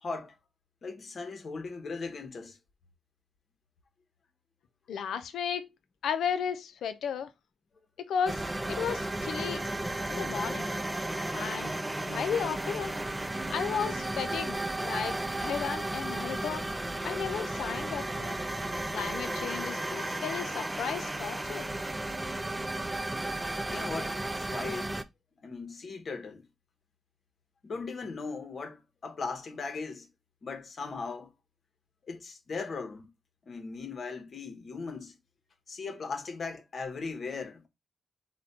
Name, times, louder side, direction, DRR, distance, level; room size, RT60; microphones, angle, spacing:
voice 1, 0.0-0.4 0.8-2.6 23.7-25.0 25.4-26.4 27.6-30.1 30.4-31.3 32.0-33.1 33.5-35.1 35.7-37.7, left 4 dB, 55° left, 0.9 m, -38 dB
voice 2, 4.9-5.7 6.0-7.3 8.0-9.6 10.1-10.7 11.3-11.7 12.0-12.9 13.5-15.2 15.4-16.7 17.0-18.4 18.9-21.7, left 7 dB, 85° left, 0.5 m, -34 dB
sound 1, 8.3-25.0, right 1 dB, 15° right, 0.4 m, -34 dB
4.1 x 2.2 x 3.9 m
cardioid pair, 65°, 0 cm